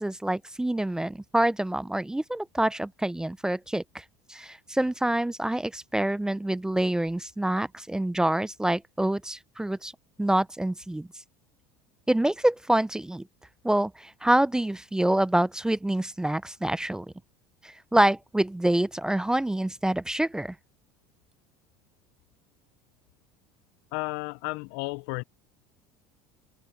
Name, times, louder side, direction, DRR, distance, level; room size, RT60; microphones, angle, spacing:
voice 1, 0.0-4.0 4.3-9.9 10.2-11.1 12.1-13.2 13.6-17.1 17.6-20.5, right 1 dB, 5° right, 0.4 m, -26 dB
voice 2, 23.9-25.2, left 27 dB, 70° left, 0.5 m, -33 dB
supercardioid pair, 125°, 13 cm